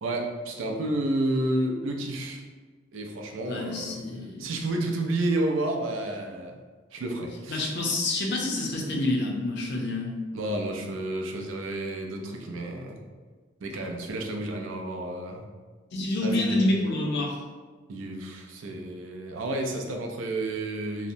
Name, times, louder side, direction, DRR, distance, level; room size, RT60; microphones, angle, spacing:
voice 1, 0.0-2.4 2.9-4.0 4.4-6.6 6.9-7.7 10.3-13.0 13.6-15.4 16.2-16.6 17.9-21.1, right 1 dB, 85° right, 1 dB, 0.4 m, -30 dB
voice 2, 3.5-4.5 7.5-10.2 15.9-17.4, left 2 dB, 60° left, -1 dB, 0.5 m, -27 dB
2.8 x 2.1 x 2.6 m, 1.4 s
head